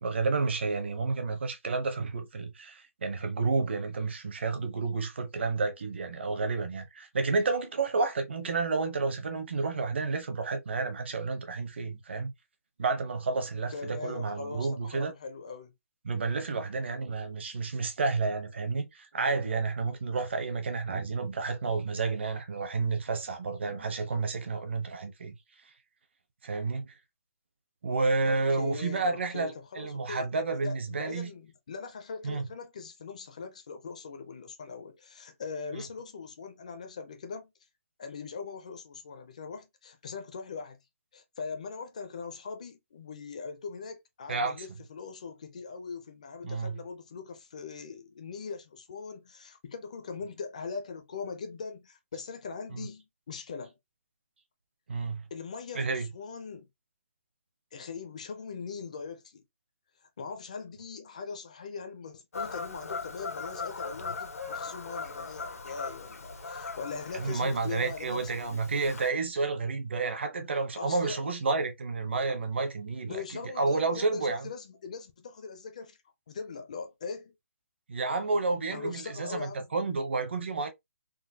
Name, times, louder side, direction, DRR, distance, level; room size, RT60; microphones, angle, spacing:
voice 1, 0.0-12.3 12.8-15.1 16.0-25.3 26.4-26.9 27.8-31.3 32.2-32.5 44.3-44.5 46.4-46.7 54.9-55.2 55.7-56.1 67.2-73.2 73.6-74.5 77.9-80.7, right 3 dB, 50° right, 0.7 m, -30 dB
voice 2, 13.7-15.7 28.2-37.5 38.0-40.8 41.1-53.7 55.3-56.7 57.7-59.4 60.0-69.0 70.7-71.2 73.1-76.0 76.3-77.3 78.7-79.7, left 5 dB, 30° left, 0.4 m, -41 dB
Fowl / Bird vocalization bird call bird song, 62.3-69.1, left 4 dB, 90° left, 0.9 m, -39 dB
3.8 x 2.2 x 2.7 m
hypercardioid pair, 175°, 8 cm